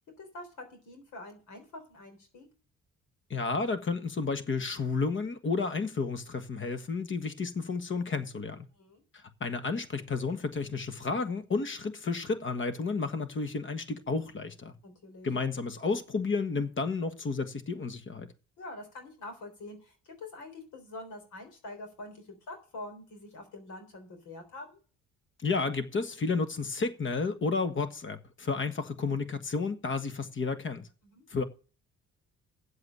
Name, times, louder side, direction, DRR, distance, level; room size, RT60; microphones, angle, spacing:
voice 1, 0.2-2.5 8.7-9.0 14.8-15.3 18.6-24.8 31.0-31.2, left 2 dB, 75° left, 3.8 m, -45 dB
voice 2, 3.3-8.7 9.1-14.7 15.2-18.3 25.4-30.9 31.3-31.4, left 4 dB, 40° left, 1.6 m, -31 dB
8.3 x 7.8 x 7.4 m
cardioid pair, 90°, 30 cm